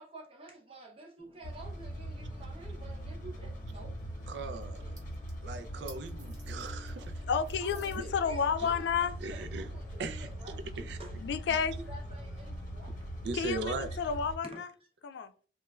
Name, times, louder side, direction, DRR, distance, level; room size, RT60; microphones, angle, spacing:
voice 1, 0.0-3.9 4.5-5.0 7.6-11.3 11.7-13.0 14.5-14.6, right 2 dB, 35° right, 0.6 m, -50 dB
sound 1, 1.2-14.2, equal, 15° left, 0.5 m, -57 dB
sound 2, 1.4-14.4, equal, 45° left, 0.7 m, -41 dB
sound 3, 1.8-9.0, right 4 dB, 50° right, 0.9 m, -61 dB
voice 2, 4.3-4.8 5.4-7.1 8.6-8.7 9.2-9.7 10.0-10.3 10.8-11.0 13.2-13.9, right 3 dB, 80° right, 0.4 m, -38 dB
voice 3, 7.3-9.1 11.2-11.7 13.3-14.7 15.0-15.3, left 6 dB, 75° left, 0.3 m, -31 dB
3.0 x 2.2 x 2.3 m
head